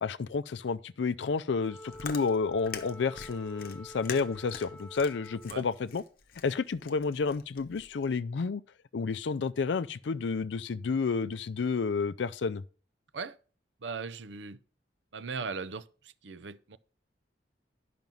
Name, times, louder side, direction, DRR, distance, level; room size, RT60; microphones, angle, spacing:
voice 1, 0.0-6.0 6.4-8.6 8.9-12.6, left 5 dB, 75° left, 0.4 m, -30 dB
Chewing mastication, 1.6-8.1, left 6 dB, 55° left, 0.9 m, -45 dB
Wind instrument woodwind instrument, 1.6-6.0, left 1 dB, 5° left, 1.0 m, -48 dB
voice 2, 13.8-14.6 15.1-15.8 16.2-16.8, right 4 dB, 80° right, 0.6 m, -38 dB
10.5 x 6.0 x 5.4 m
head